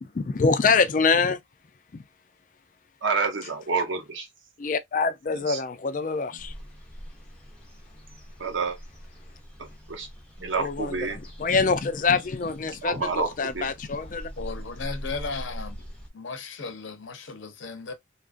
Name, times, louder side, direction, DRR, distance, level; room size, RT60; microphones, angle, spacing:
voice 1, 0.1-1.4 4.6-6.5 10.6-14.3, left 4 dB, 40° left, 0.4 m, -25 dB
voice 2, 3.0-4.3 5.3-5.6 8.4-8.8 9.6-10.1 10.4-11.2 12.8-13.7, right 4 dB, 75° right, 0.9 m, -29 dB
sound 1, 6.4-16.1, equal, 5° left, 0.7 m, -42 dB
voice 3, 14.4-15.8 16.1-17.9, left 4 dB, 75° left, 0.7 m, -35 dB
2.9 x 2.4 x 2.4 m
head